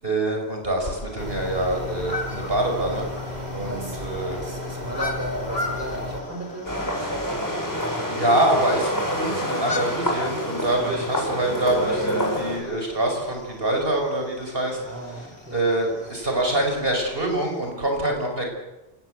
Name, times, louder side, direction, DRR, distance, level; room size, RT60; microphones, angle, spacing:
voice 1, 0.0-3.1 3.5-4.4 8.1-14.8 15.5-18.5, right 1 dB, 65° right, 2 dB, 5.9 m, -25 dB
sound 1, 0.8-17.6, left 2 dB, 75° left, 3.6 m, -38 dB
sound 2, 1.2-6.2, left 2 dB, 40° right, 2.8 m, -34 dB
voice 2, 3.6-4.0 4.3-6.9 7.5-8.1 10.7-11.1 14.8-15.7, right 1 dB, 15° right, 2 dB, 5.7 m, -35 dB
sound 3, 6.6-12.6, equal, 15° left, 6.5 m, -27 dB
28.5 x 18.0 x 8.2 m, 1.0 s
omnidirectional pair, 1.1 m